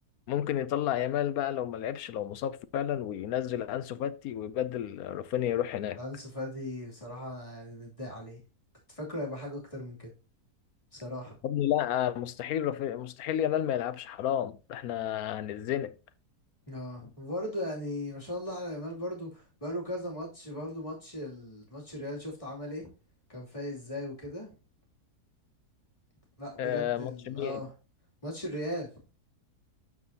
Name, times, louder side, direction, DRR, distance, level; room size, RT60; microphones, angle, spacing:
voice 1, 0.3-6.0 11.4-15.9 26.6-27.6, left 11 dB, 70° left, 1.0 m, -31 dB
voice 2, 6.0-8.4 8.9-10.1 10.9-11.4 16.7-22.9 23.3-24.5 26.4-27.7 28.2-28.9, left 1 dB, 20° left, 2.7 m, -38 dB
12.0 x 4.8 x 2.8 m
omnidirectional pair, 1.7 m